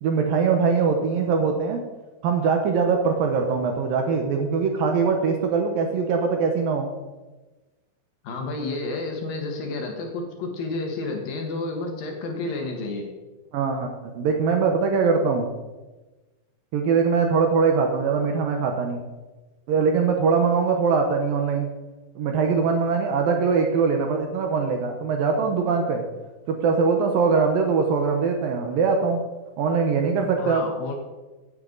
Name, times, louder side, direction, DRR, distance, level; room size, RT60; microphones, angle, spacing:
voice 1, 0.0-1.8 2.2-6.9 13.5-15.5 16.7-19.0 19.7-21.7 22.2-26.0 26.5-29.2 29.6-30.6, right 5 dB, 70° right, 3 dB, 2.4 m, -22 dB
voice 2, 8.2-13.1 30.4-30.9, left 3 dB, 65° left, 2 dB, 2.9 m, -30 dB
16.0 x 9.3 x 4.0 m, 1.2 s
omnidirectional pair, 4.8 m